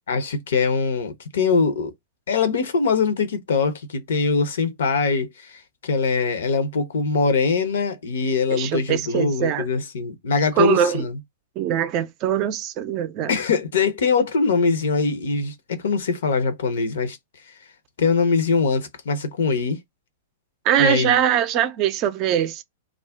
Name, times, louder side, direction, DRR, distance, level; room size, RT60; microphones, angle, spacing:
voice 1, 0.1-1.9 2.3-11.2 13.3-17.2 18.0-19.8 20.8-21.1, left 4 dB, 70° left, 0.6 m, -22 dB
voice 2, 8.5-9.7 10.6-11.1 11.6-13.3 20.6-22.6, right 10 dB, 40° right, 0.4 m, -22 dB
2.4 x 2.1 x 3.4 m
hypercardioid pair, 110°, 0 cm